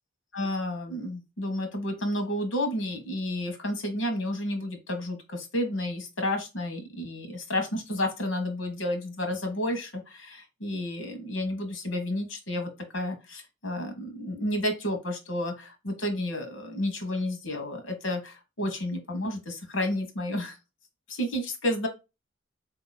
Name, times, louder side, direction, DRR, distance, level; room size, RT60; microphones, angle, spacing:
voice 1, 0.3-20.6 21.1-21.9, left 1 dB, 70° left, 5 dB, 1.3 m, -31 dB
4.1 x 2.9 x 4.0 m, 0.26 s
head